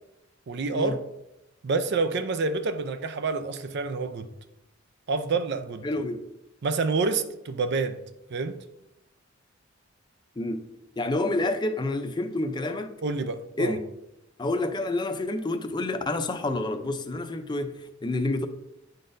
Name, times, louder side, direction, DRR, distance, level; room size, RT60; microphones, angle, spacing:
voice 1, 0.5-1.0 1.6-4.3 5.1-5.9 6.6-8.0 8.3-8.6 13.0-13.8, right 4 dB, 60° right, 0.5 m, -28 dB
voice 2, 5.8-6.3 10.4-10.6 11.0-12.9 13.6-13.8 14.4-18.5, left 2 dB, 20° left, 0.5 m, -28 dB
10.0 x 3.9 x 2.6 m
head